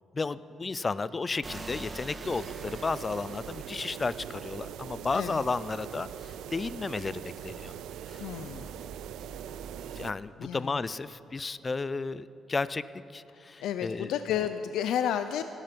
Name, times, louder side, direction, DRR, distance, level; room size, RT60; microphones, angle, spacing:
voice 1, 0.1-7.7 8.1-8.2 9.9-12.8 13.1-14.1, left 4 dB, 30° left, 17 dB, 0.4 m, -33 dB
sound 1, 1.4-10.0, right 3 dB, 35° right, 1.7 m, -47 dB
sound 2, 2.2-10.1, right 10 dB, 85° right, 0.4 m, -42 dB
voice 2, 8.2-8.7 10.4-10.8 13.3-15.4, left 9 dB, 85° left, 10 dB, 0.5 m, -32 dB
17.5 x 12.0 x 5.2 m, 3.0 s
cardioid pair, 90°, 0 cm